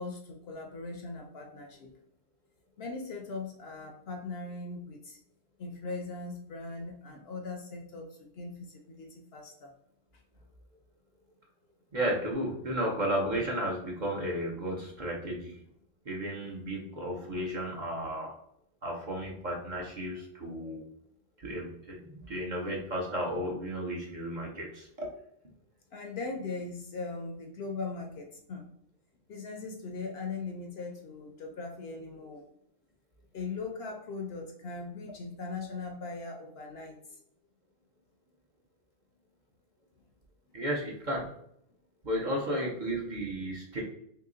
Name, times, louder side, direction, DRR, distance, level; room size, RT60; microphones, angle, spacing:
voice 1, 0.0-2.0 2.8-5.2 5.6-9.7 16.4-16.6 25.9-28.7 29.3-32.5 33.3-37.2, left 3 dB, 65° left, 2 dB, 0.7 m, -40 dB
voice 2, 11.9-15.6 16.1-18.3 18.8-20.8 21.4-25.1 40.5-41.3 42.0-43.8, equal, 45° right, -2 dB, 0.8 m, -33 dB
2.9 x 2.9 x 3.7 m, 0.71 s
omnidirectional pair, 1.3 m